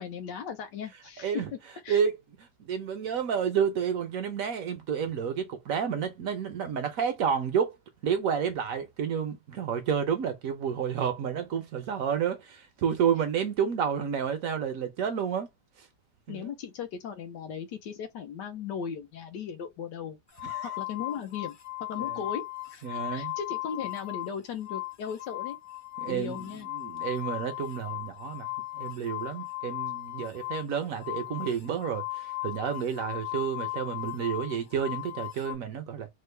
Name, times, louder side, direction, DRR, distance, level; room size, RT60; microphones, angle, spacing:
voice 1, 0.0-1.6 1.8-2.0 16.3-20.2 20.6-21.6 21.9-22.4 22.7-25.6 26.1-26.7, left 7 dB, 85° left, 1.4 m, -37 dB
voice 2, 2.6-7.8 8.0-15.5 15.8-15.9 16.3-16.5 20.4-20.7 22.0-22.2 22.8-23.3 26.0-26.5 26.7-28.5 28.7-36.1, right 7 dB, 65° right, 0.9 m, -30 dB
sound 1, 20.3-24.3 24.6-35.5, left 20 dB, 55° left, 0.5 m, -37 dB
3.6 x 2.1 x 3.2 m
omnidirectional pair, 1.8 m